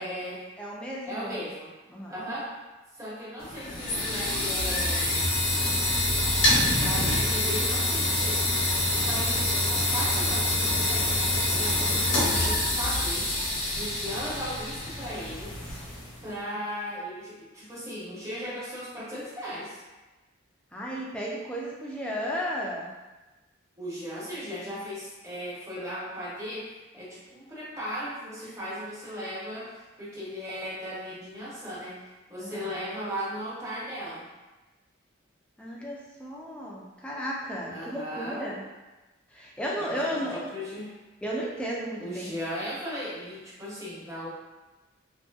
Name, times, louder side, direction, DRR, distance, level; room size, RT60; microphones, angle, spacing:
voice 1, 0.0-0.5 1.0-1.7 2.1-2.6 2.9-5.3 6.7-8.5 8.9-11.2 11.5-13.3 13.7-15.5 16.2-19.8 23.8-32.0 32.3-34.3 37.7-38.5 39.7-41.0 42.0-44.3, equal, 15° right, -8 dB, 0.7 m, -37 dB
voice 2, 0.6-1.5 1.9-2.1 20.7-22.9 32.4-32.7 35.6-38.6 39.3-40.4 41.2-42.3, equal, 5° left, -4 dB, 0.4 m, -34 dB
sound 1, 3.4-16.2, left 1 dB, 70° left, 0.9 m, -26 dB
2.6 x 2.6 x 2.3 m, 1.1 s
head